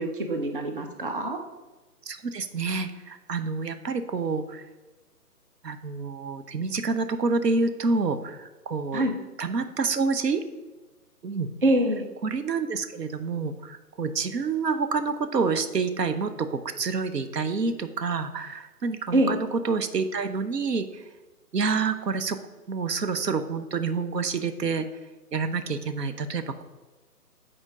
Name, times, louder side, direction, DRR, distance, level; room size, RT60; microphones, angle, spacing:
voice 1, 0.0-1.4 8.9-9.1 11.6-12.1 19.1-19.3, right 1 dB, 35° right, 4 dB, 0.5 m, -24 dB
voice 2, 2.1-4.6 5.6-9.0 9.4-10.4 11.2-11.5 12.2-21.0 21.5-22.4 22.7-24.9 25.3-26.6, right 4 dB, 85° right, 9 dB, 0.8 m, -28 dB
6.7 x 4.4 x 4.8 m, 1.2 s
figure-of-eight pair, 155°, 48 cm